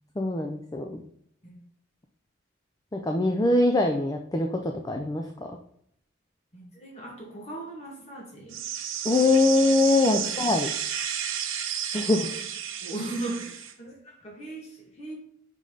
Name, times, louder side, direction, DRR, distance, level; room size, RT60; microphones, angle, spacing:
voice 1, 0.2-1.0 2.9-5.2 9.0-10.7 11.9-12.2, left 2 dB, 20° left, 3 dB, 0.4 m, -23 dB
voice 2, 6.5-8.6 10.0-10.4 12.0-12.3 12.8-15.1, right 2 dB, 35° left, -1 dB, 1.8 m, -38 dB
sound 1, 8.5-13.7, right 9 dB, 85° right, 0.7 m, -32 dB
5.5 x 5.2 x 3.8 m, 0.70 s
head